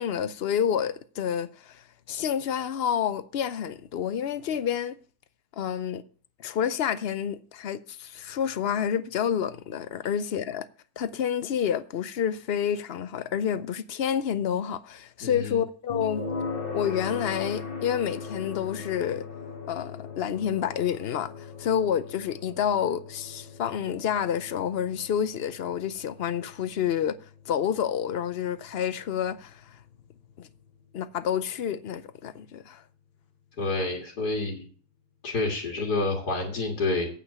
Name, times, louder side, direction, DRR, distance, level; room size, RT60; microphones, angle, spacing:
voice 1, 0.0-5.0 5.6-6.0 6.4-10.7 11.0-16.2 16.7-19.3 19.7-27.2 27.5-29.8 30.4-30.5 30.9-32.8, left 8 dB, 60° left, 0.6 m, -29 dB
voice 2, 15.2-15.6 33.6-34.6 35.2-37.1, left 2 dB, 90° left, 2.4 m, -28 dB
sound 1, 15.9-30.8, left 4 dB, 40° left, 1.5 m, -39 dB
8.8 x 5.6 x 8.1 m
omnidirectional pair, 1.7 m